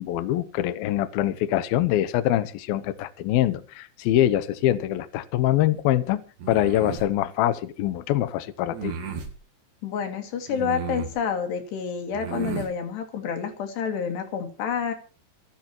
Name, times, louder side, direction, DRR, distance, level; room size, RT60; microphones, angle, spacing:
voice 1, 0.0-6.2 6.5-8.9, left 13 dB, 80° left, 2.1 m, -24 dB
sound 1, 6.4-7.1 8.7-9.3 10.5-11.2 12.1-12.7, right 7 dB, 60° right, 4.7 m, -33 dB
voice 2, 9.8-14.9, left 7 dB, 60° left, 4.4 m, -29 dB
25.5 x 12.5 x 3.1 m
omnidirectional pair, 5.7 m